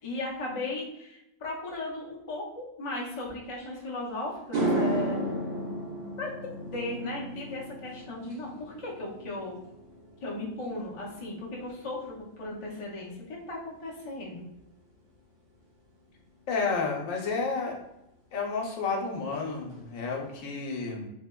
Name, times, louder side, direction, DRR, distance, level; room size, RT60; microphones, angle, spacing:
voice 1, 0.0-5.2 6.2-6.3 6.7-9.6 10.2-14.5, left 2 dB, 45° left, -4 dB, 0.4 m, -36 dB
sound 1, 3.8-3.9 4.3-12.8 13.1-13.6 17.2-17.3 18.9-19.0 19.3-19.4 19.7-20.2, right 1 dB, 75° right, 1.3 m, -34 dB
voice 2, 16.5-17.8 18.3-21.1, left 4 dB, 85° left, 1 dB, 1.0 m, -31 dB
3.4 x 2.1 x 2.2 m, 0.86 s
omnidirectional pair, 1.3 m